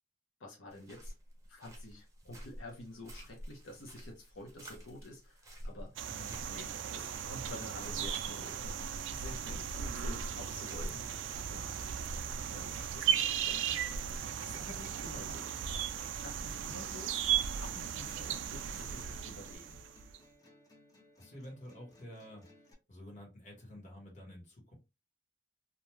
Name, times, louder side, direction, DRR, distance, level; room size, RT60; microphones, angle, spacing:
voice 1, 0.4-1.1 1.5-6.0 6.5-8.8 9.1-11.9 12.5-15.5 16.2-19.8, left 1 dB, 85° left, 0.8 m, -50 dB
sound 1, 0.7-19.6, equal, 15° right, 0.6 m, -49 dB
sound 2, 6.0-20.2, right 8 dB, 75° right, 0.3 m, -36 dB
voice 2, 6.1-6.4 21.2-22.5 22.9-24.7, left 1 dB, 40° left, 1.2 m, -50 dB
sound 3, 14.7-22.7, left 2 dB, 20° left, 0.6 m, -62 dB
2.4 x 2.2 x 3.1 m
head